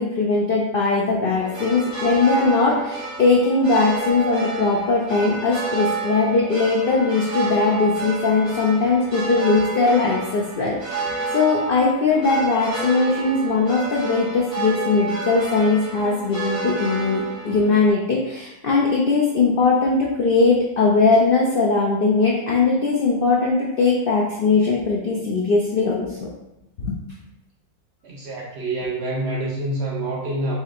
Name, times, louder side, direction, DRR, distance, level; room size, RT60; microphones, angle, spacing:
voice 1, 0.0-26.3 26.8-27.0, left 3 dB, 85° left, -3 dB, 0.5 m, -20 dB
sound 1, 1.4-17.9, right 3 dB, 30° right, 0.7 m, -30 dB
voice 2, 28.0-30.6, right 2 dB, 60° right, -3 dB, 0.7 m, -27 dB
4.2 x 2.9 x 2.4 m, 0.94 s
omnidirectional pair, 1.6 m